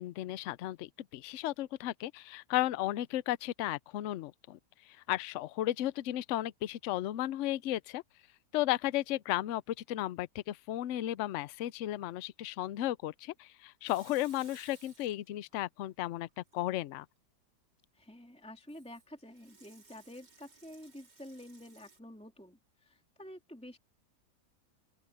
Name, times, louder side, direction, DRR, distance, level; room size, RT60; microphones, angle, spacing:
voice 1, 0.0-4.6 5.1-8.0 8.5-17.1, left 14 dB, 70° left, 0.7 m, -34 dB
Water tap faucet / Sink (filling or washing) / Liquid, 13.9-15.6 15.9-16.6 18.7-22.0, right 4 dB, 80° right, 3.7 m, -60 dB
voice 2, 17.9-23.8, left 1 dB, 5° left, 2.9 m, -50 dB
open air
omnidirectional pair, 1.8 m